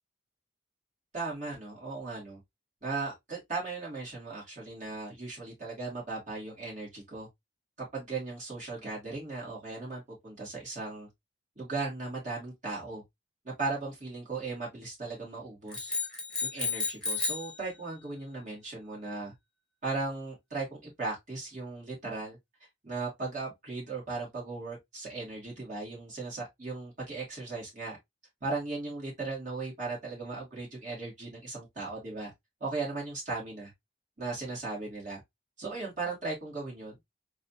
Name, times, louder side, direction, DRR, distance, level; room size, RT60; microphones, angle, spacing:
voice 1, 1.1-2.4 2.8-7.3 7.8-11.1 11.6-13.0 13.4-15.9 16.4-19.3 19.8-22.4 22.8-28.0 28.4-32.3 32.6-33.7 34.2-35.2 35.6-37.0, right 3 dB, 40° right, 2.2 m, -37 dB
sound 1, 15.7-17.5, left 4 dB, 5° left, 1.2 m, -32 dB
3.9 x 2.6 x 2.7 m
head